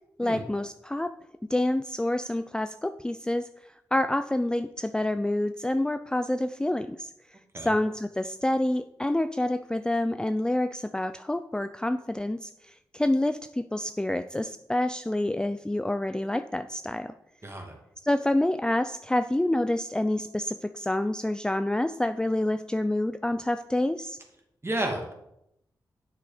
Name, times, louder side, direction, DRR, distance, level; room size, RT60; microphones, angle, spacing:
voice 1, 0.2-1.1 1.5-3.5 3.9-7.1 7.6-17.1 18.0-24.2, left 1 dB, 10° left, 11 dB, 0.4 m, -27 dB
voice 2, 17.4-17.7 24.6-25.1, right 1 dB, 30° right, 2 dB, 2.5 m, -31 dB
8.2 x 6.2 x 5.2 m, 0.82 s
cardioid pair, 45°, 8 cm